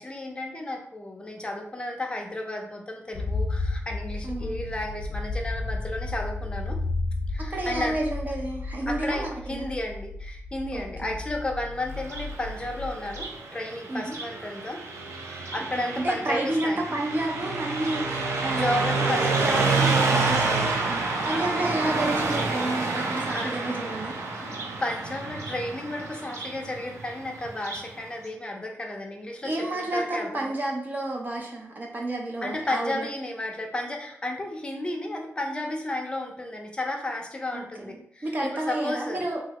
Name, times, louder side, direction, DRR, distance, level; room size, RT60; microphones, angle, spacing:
voice 1, 0.0-6.8 7.3-8.0 8.9-14.8 15.2-16.9 18.5-19.9 21.3-21.8 23.0-23.8 24.2-30.5 32.4-39.3, left 1 dB, 20° left, 1 dB, 0.5 m, -33 dB
sound 1, 3.1-13.2, left 2 dB, 85° left, 0.6 m, -33 dB
voice 2, 4.2-4.6 7.5-9.7 10.7-11.1 13.9-14.1 15.7-24.2 29.4-33.1 37.5-39.4, right 2 dB, 40° right, 0 dB, 0.6 m, -31 dB
Car passing by, 11.9-27.9, right 3 dB, 85° right, 0.5 m, -28 dB
3.0 x 2.3 x 2.9 m, 0.66 s
wide cardioid pair, 160°, 5 cm